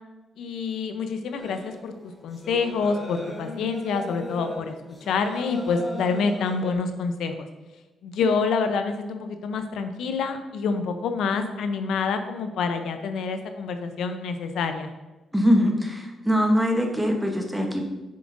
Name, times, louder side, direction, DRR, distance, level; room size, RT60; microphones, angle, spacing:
voice 1, 0.4-1.9 2.2-4.7 5.0-7.5 8.0-14.9, left 5 dB, 85° left, 7 dB, 0.6 m, -27 dB
sound 1, 1.4-6.7, left 1 dB, 15° left, 1.2 m, -38 dB
voice 2, 15.3-17.8, equal, 5° right, 2 dB, 0.9 m, -22 dB
7.6 x 6.9 x 2.6 m, 1.1 s
cardioid pair, 135°, 0 cm